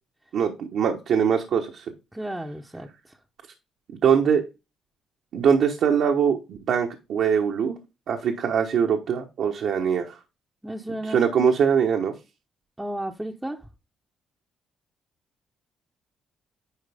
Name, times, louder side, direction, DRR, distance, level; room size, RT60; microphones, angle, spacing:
voice 1, 0.3-1.9 4.0-4.4 5.3-7.8 8.1-10.2 11.0-12.1, right 7 dB, 70° right, 1.2 m, -22 dB
voice 2, 2.1-3.2 10.6-11.2 12.8-13.7, right 1 dB, 10° right, 0.9 m, -33 dB
10.5 x 4.6 x 3.5 m
cardioid pair, 90°, 0 cm